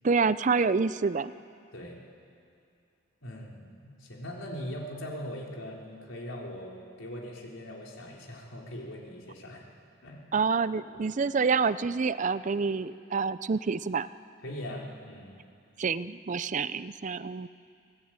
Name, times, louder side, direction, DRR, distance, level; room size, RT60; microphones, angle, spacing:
voice 1, 0.0-1.3 10.3-14.1 15.8-17.5, right 5 dB, 40° right, 16 dB, 0.5 m, -27 dB
voice 2, 3.2-3.7 4.0-9.7 10.0-10.2 10.7-11.0 14.4-15.4, equal, 90° left, -1 dB, 3.9 m, -40 dB
23.5 x 17.5 x 8.9 m, 2.5 s
head